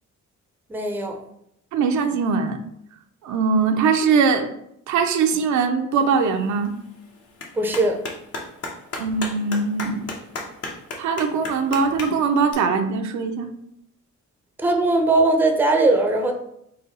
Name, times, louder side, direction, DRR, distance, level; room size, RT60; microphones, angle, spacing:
voice 1, 0.7-1.2 7.6-8.0 14.6-16.3, right 2 dB, 5° right, 4 dB, 0.5 m, -19 dB
voice 2, 1.7-2.6 3.2-4.5 4.9-6.7 9.0-10.1 11.0-13.5, right 5 dB, 70° right, 6 dB, 0.5 m, -21 dB
Clapping, 5.9-12.5, left 3 dB, 50° left, 0.9 m, -36 dB
4.0 x 2.2 x 4.0 m, 0.75 s
cardioid pair, 90°, 30 cm